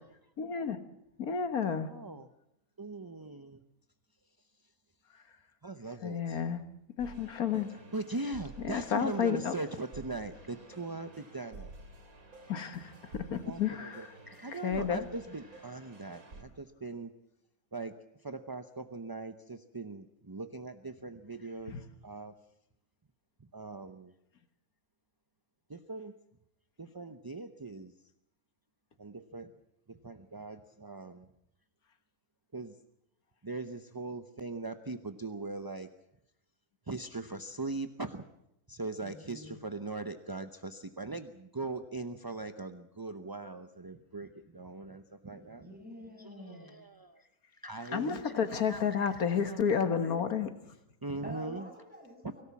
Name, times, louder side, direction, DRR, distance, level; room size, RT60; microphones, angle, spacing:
voice 1, 0.4-0.8 1.2-1.9 6.0-6.6 7.0-7.8 8.6-9.6 12.5-14.1 14.5-15.0 21.7-21.8 47.9-50.5, left 7 dB, 75° left, 9 dB, 1.8 m, -31 dB
voice 2, 1.6-2.3 2.8-3.6 5.6-6.4 7.7-11.7 13.5-17.1 17.7-17.9 18.2-22.3 23.5-24.1 25.7-26.1 26.8-27.9 29.0-29.5 29.9-31.3 32.5-32.7 33.4-35.9 36.9-38.2 38.7-45.7 46.2-47.3 47.6-50.1 51.0-51.7, right 3 dB, 20° right, 9 dB, 0.6 m, -41 dB
sound 1, 7.0-16.4, right 2 dB, 70° right, 3.3 m, -51 dB
voice 3, 38.9-39.7 45.3-46.7 51.2-52.4, left 1 dB, 5° right, 1 dB, 6.7 m, -48 dB
25.0 x 18.0 x 7.2 m, 0.81 s
omnidirectional pair, 1.6 m